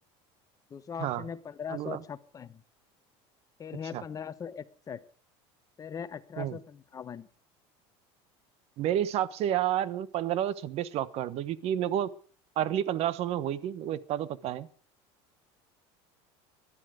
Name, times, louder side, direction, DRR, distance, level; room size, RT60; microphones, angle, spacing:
voice 1, 0.7-2.6 3.6-5.0 5.8-7.3, left 7 dB, 25° left, 11 dB, 1.1 m, -40 dB
voice 2, 8.8-12.1 12.6-14.7, right 11 dB, 50° right, 17 dB, 1.1 m, -30 dB
18.5 x 12.0 x 5.0 m, 0.44 s
supercardioid pair, 125°, 13 cm